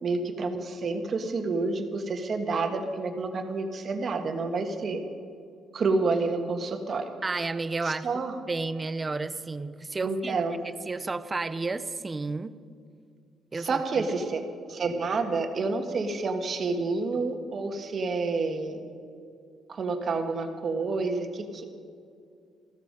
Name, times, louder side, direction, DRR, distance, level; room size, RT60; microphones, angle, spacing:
voice 1, 0.0-5.0 5.7-7.1 7.8-8.4 10.0-10.6 13.5-14.4 14.7-18.8 19.7-21.6, right 3 dB, 45° right, 5 dB, 1.5 m, -29 dB
voice 2, 7.2-10.4 10.6-12.5 13.5-14.1, right 3 dB, 25° right, 14 dB, 0.6 m, -32 dB
14.5 x 13.5 x 5.2 m, 2.4 s
cardioid pair, 110°, 0 cm